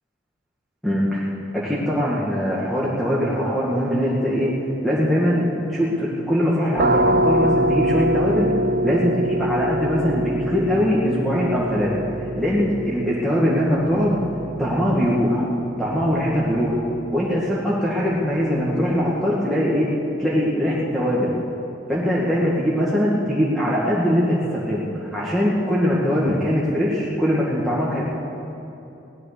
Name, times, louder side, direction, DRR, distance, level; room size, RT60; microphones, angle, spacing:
voice 1, 0.8-4.5 4.8-8.5 8.8-11.9 12.4-14.2 14.6-15.5 15.8-16.8 17.1-19.9 20.2-21.3 21.9-28.0, equal, ahead, -7 dB, 1.9 m, -21 dB
sound 1, 6.8-18.3, right 1 dB, 50° right, 0.5 m, -25 dB
17.5 x 12.5 x 6.8 m, 2.9 s
head